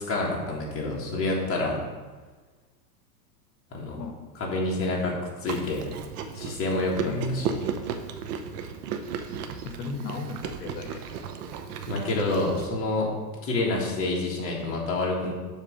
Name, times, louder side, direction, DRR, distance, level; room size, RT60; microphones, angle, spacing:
voice 1, 0.1-1.8 3.7-4.0 4.4-5.9 6.3-7.5 11.9-13.1 13.4-15.3, left 2 dB, 25° left, -3 dB, 1.8 m, -28 dB
Chewing mastication, 5.5-12.7, right 7 dB, 70° right, 0.8 m, -35 dB
voice 2, 7.0-7.5 9.6-11.0, left 2 dB, 80° left, 5 dB, 0.9 m, -34 dB
7.4 x 3.3 x 6.1 m, 1.3 s
hypercardioid pair, 125°, 48 cm